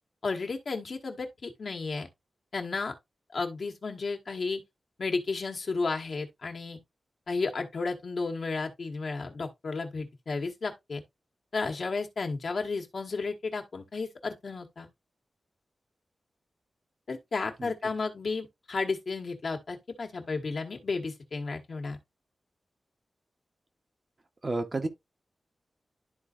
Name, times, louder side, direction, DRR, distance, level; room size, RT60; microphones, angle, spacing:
voice 1, 0.2-2.1 2.5-2.9 3.3-4.6 5.0-6.8 7.3-11.0 11.5-14.9 17.1-22.0, left 4 dB, 60° left, 1.4 m, -33 dB
voice 2, 24.4-24.9, right 2 dB, 35° right, 1.0 m, -30 dB
12.0 x 4.0 x 2.5 m
wide cardioid pair, 110°, 0 cm